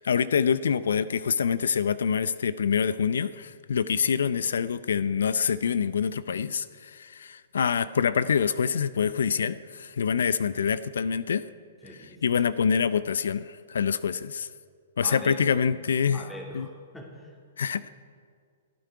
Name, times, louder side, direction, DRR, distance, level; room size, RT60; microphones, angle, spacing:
voice 1, 0.0-11.4 12.2-14.5 15.0-16.2 16.5-16.7 17.6-17.9, left 7 dB, 75° left, 17 dB, 0.5 m, -26 dB
voice 2, 11.8-12.3 15.0-15.5 16.1-17.4, equal, 5° left, 0 dB, 2.6 m, -42 dB
27.5 x 9.3 x 4.7 m, 2.2 s
hypercardioid pair, 120°, 0 cm